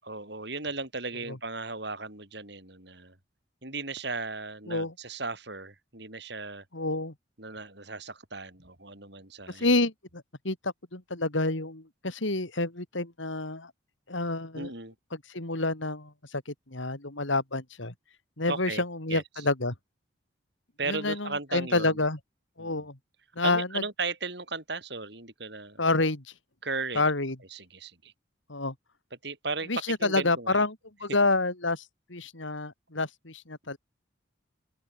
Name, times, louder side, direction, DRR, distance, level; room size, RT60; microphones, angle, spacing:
voice 1, 0.0-3.2 3.6-6.6 7.4-9.7 14.5-14.9 18.5-18.8 19.1-19.4 20.8-22.0 22.6-22.8 23.4-25.8 26.6-27.0 27.5-28.1 29.2-30.7, right 3 dB, 55° right, 5.9 m, -36 dB
voice 2, 6.7-7.1 9.5-13.7 14.1-14.7 15.1-17.9 18.4-19.7 20.9-22.2 22.6-23.0 23.4-23.8 25.8-26.2 26.9-27.4 28.5-28.7 29.7-31.8 32.1-33.8, left 2 dB, 75° left, 3.0 m, -28 dB
open air
head